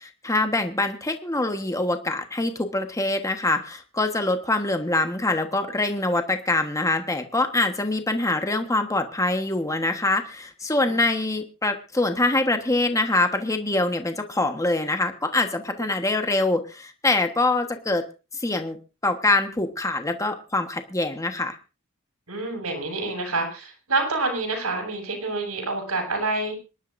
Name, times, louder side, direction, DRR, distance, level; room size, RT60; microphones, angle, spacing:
voice 1, 0.0-18.0 18.3-18.8 19.0-21.6, left 2 dB, 15° left, 6 dB, 1.3 m, -24 dB
voice 2, 22.3-26.5, right 3 dB, 90° right, 3 dB, 6.7 m, -27 dB
27.0 x 11.5 x 2.6 m, 0.32 s
head